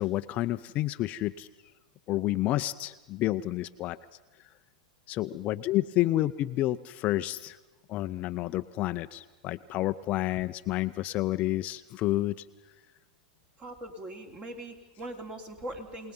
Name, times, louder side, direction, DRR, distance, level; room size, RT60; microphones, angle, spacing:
voice 1, 0.0-1.5 2.1-4.0 5.1-7.6 7.9-12.3, left 15 dB, 35° left, 11 dB, 0.6 m, -29 dB
voice 2, 13.6-16.1, right 1 dB, 25° right, 5 dB, 3.2 m, -41 dB
28.5 x 19.5 x 5.5 m, 1.1 s
hypercardioid pair, 120°, 4 cm